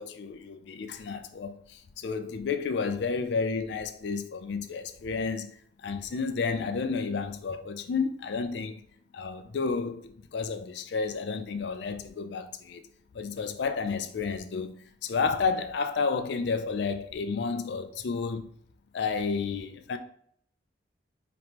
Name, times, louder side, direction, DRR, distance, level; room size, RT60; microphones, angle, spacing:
voice 1, 0.0-8.8 9.1-12.8 13.1-14.7 15.0-18.5 18.9-20.0, left 5 dB, 70° left, 0.4 m, -31 dB
5.1 x 3.0 x 2.9 m
head